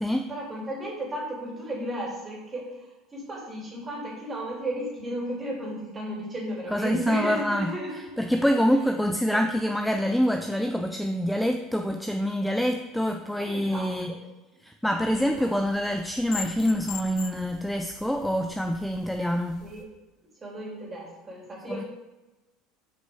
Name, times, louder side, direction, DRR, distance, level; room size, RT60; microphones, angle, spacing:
voice 1, 0.3-8.2 9.3-9.4 13.4-14.2 15.2-15.4 19.6-19.8 20.4-21.8, right 1 dB, 20° right, -3 dB, 2.6 m, -34 dB
voice 2, 6.7-7.8 8.2-14.2 14.6-19.6 21.7-21.8, equal, ahead, 4 dB, 0.4 m, -26 dB
sound 1, 15.0-19.8, left 7 dB, 55° left, 1.1 m, -42 dB
6.4 x 5.4 x 4.8 m, 1.1 s
supercardioid pair, 135°, 0 cm